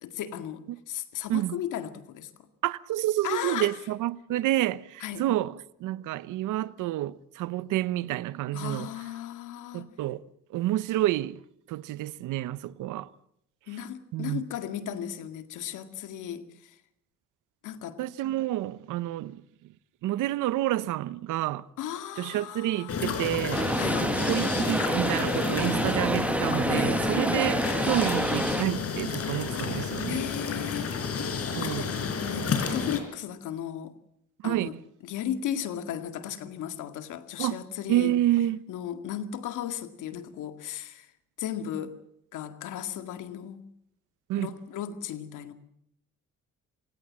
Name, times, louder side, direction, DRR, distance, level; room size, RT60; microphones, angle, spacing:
voice 1, 0.0-2.3 3.2-3.8 5.0-5.3 8.5-9.9 13.7-16.8 17.6-18.0 21.8-23.4 23.8-24.1 26.7-27.0 30.1-33.9 34.4-34.7 35.0-38.2 38.7-41.1 41.4-41.9 42.3-43.6 44.4-45.5, left 10 dB, 85° left, 2.0 m, -36 dB
voice 2, 2.6-5.5 5.8-8.9 9.7-10.2 10.5-11.4 11.7-13.1 14.1-14.4 18.0-19.4 20.0-21.6 22.2-23.7 24.3-30.2 31.5-31.9 34.4-34.7 37.4-37.6 37.9-38.6 44.3-44.5, right 14 dB, 90° right, 0.9 m, -29 dB
sound 1, 22.9-33.0, left 5 dB, 50° left, 4.5 m, -31 dB
sound 2, 23.5-28.6, right 1 dB, 5° right, 1.1 m, -28 dB
28.0 x 17.0 x 7.4 m
cardioid pair, 90°, 30 cm